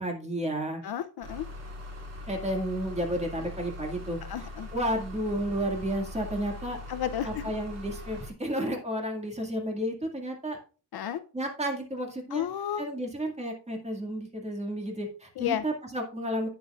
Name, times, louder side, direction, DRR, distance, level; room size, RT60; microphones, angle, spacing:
voice 1, 0.0-0.8 2.3-6.8 7.2-10.6 11.3-12.5 12.8-16.5, right 1 dB, 15° right, 1 dB, 2.0 m, -32 dB
voice 2, 0.8-1.4 4.3-4.7 6.9-7.5 10.9-11.2 12.3-12.9 15.4-15.6, left 10 dB, 60° left, 12 dB, 0.6 m, -32 dB
sound 1, 1.2-8.3, left 2 dB, 40° right, 2.8 m, -41 dB
11.0 x 8.6 x 2.4 m, 0.36 s
wide cardioid pair, 170°, 42 cm